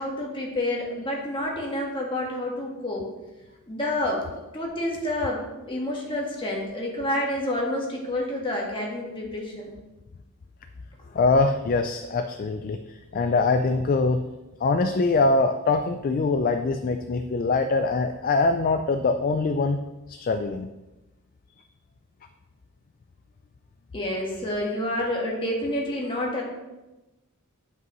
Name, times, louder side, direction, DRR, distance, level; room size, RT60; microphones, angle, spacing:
voice 1, 0.0-3.1 3.7-4.3 4.5-9.7 23.9-26.4, left 1 dB, 25° left, -2 dB, 1.5 m, -29 dB
voice 2, 11.1-12.8 13.1-14.2 14.6-19.8 20.1-20.7, left 3 dB, 40° left, 7 dB, 0.3 m, -23 dB
9.6 x 5.5 x 3.0 m, 1.0 s
head